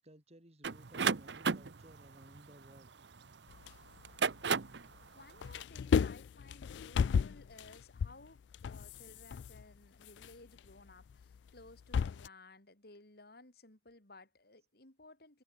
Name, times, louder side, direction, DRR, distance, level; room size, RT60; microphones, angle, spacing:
voice 1, 0.0-2.9, right 1 dB, 40° right, 5.8 m, -59 dB
sound 1, 0.6-3.4 4.0-4.9, right 5 dB, 80° right, 0.8 m, -34 dB
sound 2, 3.5-5.0 5.3-12.3, left 6 dB, 90° left, 0.3 m, -35 dB
voice 2, 5.1-15.4, left 2 dB, 60° left, 4.3 m, -57 dB
head